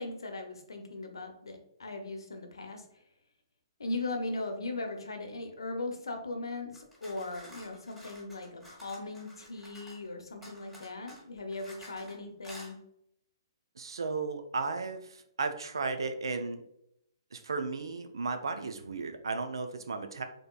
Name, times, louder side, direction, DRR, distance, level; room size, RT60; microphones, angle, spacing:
voice 1, 0.0-2.8 3.8-12.8, left 2 dB, 75° left, 4 dB, 0.8 m, -38 dB
sound 1, 6.7-10.1 10.4-12.1 12.4-12.7, equal, ahead, 1.4 m, -51 dB
voice 2, 13.8-16.6 17.3-20.2, right 4 dB, 70° right, 7 dB, 0.5 m, -35 dB
3.9 x 3.6 x 2.4 m, 0.75 s
figure-of-eight pair, 125°, 2 cm